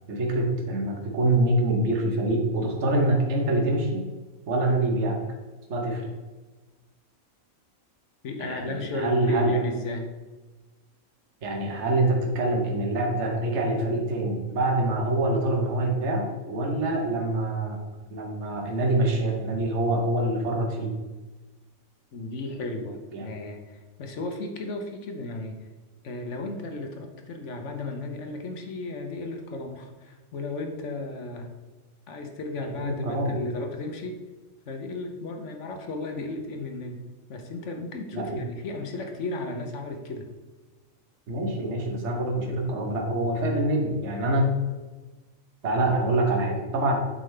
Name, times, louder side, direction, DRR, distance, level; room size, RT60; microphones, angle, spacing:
voice 1, 0.1-4.1 4.5-5.2 5.7-6.1 8.4-9.5 11.4-17.8 18.1-20.9 23.1-23.3 32.8-33.4 38.1-38.4 41.3-44.6 45.6-47.0, right 1 dB, 55° right, 1 dB, 1.3 m, -25 dB
voice 2, 8.2-10.1 22.1-25.7 26.0-31.6 32.1-34.2 34.7-40.3, left 2 dB, 60° left, 4 dB, 1.1 m, -34 dB
7.5 x 5.3 x 3.3 m, 1.2 s
omnidirectional pair, 1.5 m